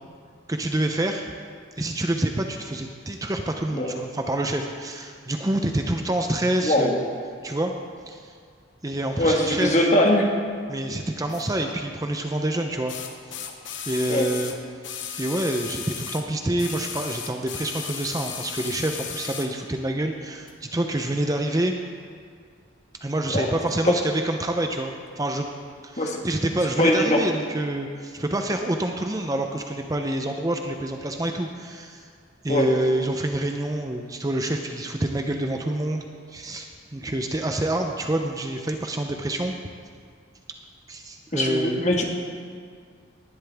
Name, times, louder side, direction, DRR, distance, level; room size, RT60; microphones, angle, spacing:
voice 1, 0.5-1.2 1.8-7.1 7.4-7.7 8.1-8.3 8.8-9.9 10.7-13.0 13.9-14.5 15.2-21.7 23.0-25.5 25.8-32.0 32.4-39.5 40.9-41.9, right 1 dB, 20° right, 4 dB, 0.6 m, -27 dB
voice 2, 6.6-6.9 9.2-10.3 14.1-14.3 23.3-23.5 23.8-23.9 26.0-26.2 26.8-27.2 32.5-32.7 41.3-42.1, left 1 dB, 40° left, 0 dB, 1.7 m, -21 dB
sound 1, 11.3-11.4 12.9-16.3 16.6-19.5 20.5-20.6, left 8 dB, 75° left, 1.1 m, -35 dB
19.0 x 11.5 x 3.5 m, 2.1 s
head